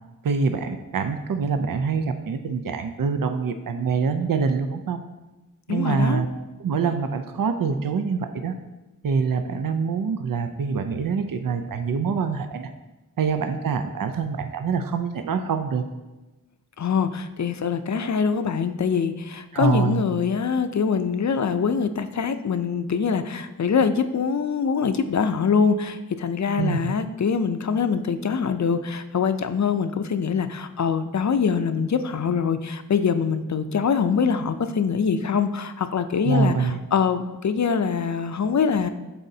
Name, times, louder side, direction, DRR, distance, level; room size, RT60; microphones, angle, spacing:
voice 1, 0.2-5.0 5.7-6.3 6.6-8.5 9.0-12.7 13.2-15.8 19.5-20.0 26.6-26.8 36.2-36.8, right 5 dB, 75° right, 8 dB, 0.5 m, -25 dB
voice 2, 5.7-6.2 16.8-38.9, left 6 dB, 55° left, 10 dB, 0.5 m, -24 dB
11.5 x 4.2 x 2.7 m, 1.1 s
wide cardioid pair, 70°, 34 cm